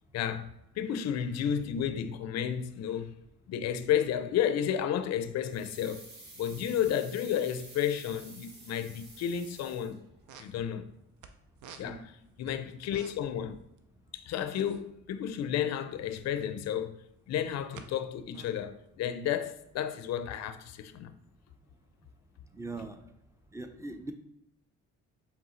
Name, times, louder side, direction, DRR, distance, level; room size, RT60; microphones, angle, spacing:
voice 1, 0.1-0.5 0.8-3.1 3.5-6.0 6.4-10.0 10.4-10.9 11.8-12.1 12.4-13.6 14.1-17.0 17.3-21.2, left 9 dB, 60° left, 0.4 m, -32 dB
sound 1, 5.5-10.3 10.5-10.6, right 2 dB, 35° right, 1.3 m, -51 dB
sound 2, 10.1-11.3 11.6-13.4 13.7-13.8 14.1-16.6 17.1-17.9 18.2-20.1, right 7 dB, 75° right, 0.6 m, -52 dB
voice 2, 22.5-23.0 23.5-24.1, right 3 dB, 10° right, 0.5 m, -40 dB
4.6 x 3.4 x 3.1 m
cardioid pair, 90°, 30 cm